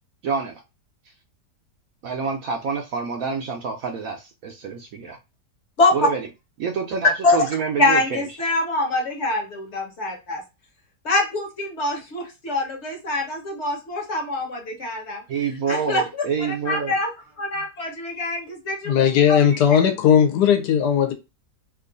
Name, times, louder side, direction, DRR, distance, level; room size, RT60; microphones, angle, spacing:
voice 1, 0.2-0.6 2.0-5.2 5.9-6.3 6.6-8.3 15.3-17.0, right 6 dB, 70° right, 0.9 m, -27 dB
voice 2, 5.8-6.1 7.2-7.4 7.8-10.4 11.0-15.2 15.7-16.2 16.7-17.1 17.4-18.9 19.3-19.4, left 2 dB, 50° left, 1.1 m, -24 dB
voice 3, 18.8-21.1, left 8 dB, 75° left, 1.2 m, -17 dB
3.0 x 2.4 x 3.8 m
omnidirectional pair, 1.8 m